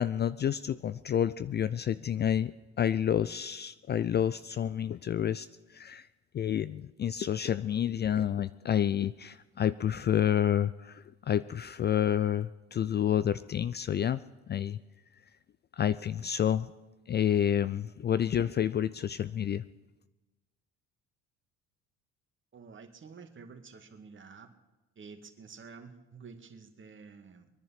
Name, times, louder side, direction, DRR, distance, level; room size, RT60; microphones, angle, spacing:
voice 1, 0.0-2.5 2.8-5.5 5.7-6.1 6.3-14.2 14.5-14.8 15.8-16.7 17.1-19.6, left 9 dB, 30° left, 15 dB, 0.5 m, -29 dB
voice 2, 22.5-24.5 25.0-27.5, right 5 dB, 35° right, 6 dB, 2.1 m, -50 dB
23.0 x 10.5 x 5.7 m, 1.1 s
hypercardioid pair, 60°, 33 cm